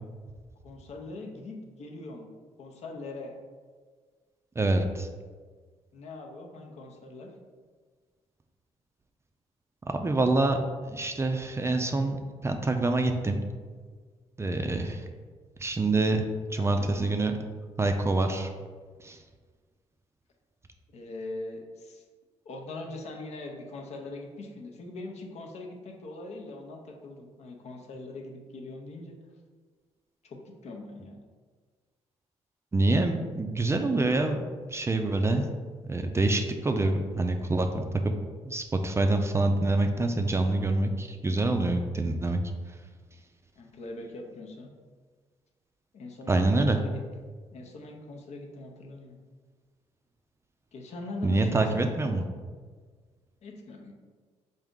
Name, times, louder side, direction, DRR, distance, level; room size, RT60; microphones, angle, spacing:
voice 1, 0.6-2.3 2.6-3.4 5.9-7.3 16.6-17.2 20.9-22.0 22.4-29.2 30.2-31.2 43.6-44.7 45.9-47.0 47.5-49.2 50.7-51.7 53.4-53.9, left 2 dB, 65° left, 1 dB, 0.6 m, -41 dB
voice 2, 4.6-5.1 9.9-10.6 10.8-13.4 14.4-15.0 15.6-16.2 16.5-17.3 17.8-18.5 19.0-19.2 32.7-34.4 34.7-35.5 35.9-37.7 38.4-42.4 46.3-46.8 51.2-52.2, right 2 dB, 20° right, 5 dB, 0.4 m, -26 dB
3.5 x 2.6 x 3.6 m, 1.5 s
cardioid pair, 75°, 12 cm